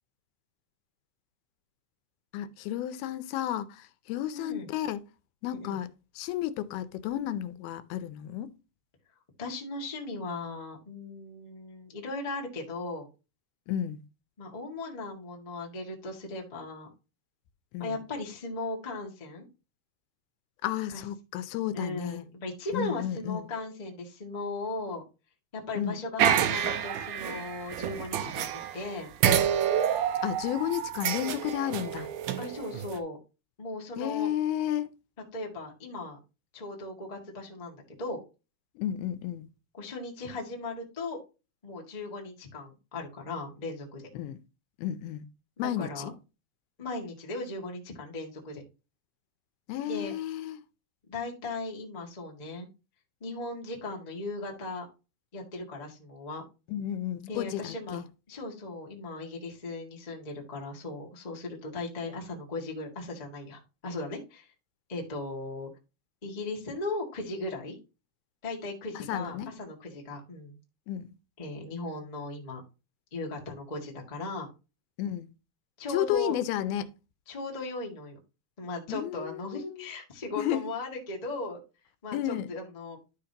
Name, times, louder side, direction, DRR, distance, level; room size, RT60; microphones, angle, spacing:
voice 1, 2.3-5.0 5.4-5.9 6.2-8.5 13.7-14.0 17.7-18.0 20.6-22.2 22.7-23.5 25.7-26.0 30.2-32.1 34.0-34.9 38.8-39.5 44.1-44.4 44.8-45.3 45.6-46.1 49.7-50.6 56.7-58.1 69.0-69.5 70.9-71.1 75.0-75.3 75.9-76.9 78.9-79.9 80.4-80.7 82.1-82.5, left 12 dB, 85° left, 2.6 m, -32 dB
voice 2, 4.3-4.7 5.4-5.8 9.4-13.1 14.4-16.9 17.8-19.4 20.9-21.0 21.7-25.0 25.5-29.1 32.4-33.2 33.6-34.3 35.3-36.2 36.5-38.2 39.8-41.2 41.6-44.1 45.6-46.1 46.8-48.6 49.8-50.1 51.1-52.7 53.2-54.9 55.3-56.4 57.3-58.0 58.3-64.5 64.9-65.7 66.2-67.8 68.4-70.6 71.4-72.6 73.1-74.5 75.8-76.4 77.3-78.2 78.6-81.6 82.0-83.0, left 2 dB, 25° left, 0.8 m, -37 dB
sound 1, 26.2-28.9 29.2-33.0, right 9 dB, 75° right, 2.1 m, -28 dB
12.0 x 5.1 x 2.9 m
omnidirectional pair, 4.3 m